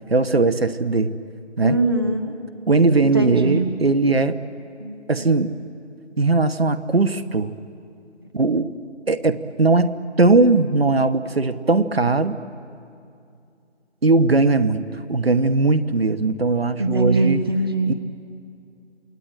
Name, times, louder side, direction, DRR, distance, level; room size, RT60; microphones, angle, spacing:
voice 1, 0.1-1.1 1.6-1.8 2.7-4.4 5.1-5.5 6.2-7.5 8.3-8.7 9.1-12.4 14.0-17.4 17.9-18.0, right 3 dB, 60° right, 12 dB, 1.2 m, -19 dB
voice 2, 1.6-2.3 3.1-3.7 4.8-5.3 16.8-17.9, right 2 dB, 20° right, 6 dB, 0.8 m, -22 dB
28.0 x 21.0 x 9.0 m, 2.5 s
figure-of-eight pair, 160°, 35 cm